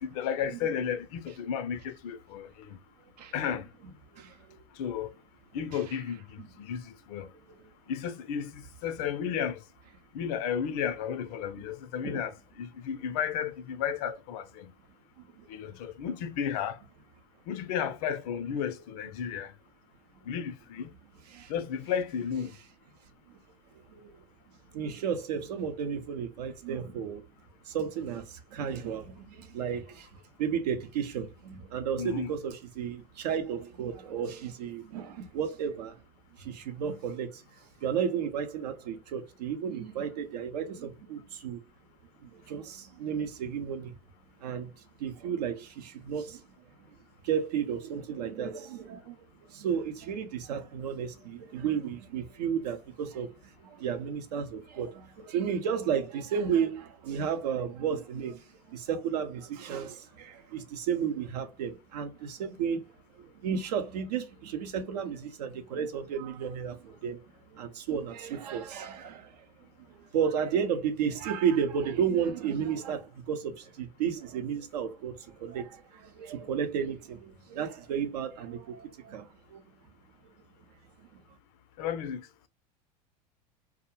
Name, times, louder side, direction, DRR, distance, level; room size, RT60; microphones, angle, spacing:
voice 1, 0.0-2.8 3.3-3.7 4.8-5.1 5.5-7.3 7.9-9.6 10.1-14.7 15.5-16.8 17.5-19.5 20.2-20.9 21.5-22.6 32.0-32.4 81.8-82.5, left 8 dB, 60° left, 0.5 m, -33 dB
voice 2, 4.1-4.6 5.7-5.8 7.5-7.6 12.0-12.2 15.4-15.5 21.3-21.5 23.3-23.4 23.9-24.2 24.7-27.2 27.7-30.1 30.4-36.0 36.4-37.4 37.8-41.6 42.2-43.9 44.4-44.7 45.0-46.4 47.2-62.8 63.1-67.2 67.5-79.6 81.0-81.1, right 7 dB, 75° right, 0.6 m, -33 dB
2.4 x 2.1 x 2.9 m
hypercardioid pair, 90°, 21 cm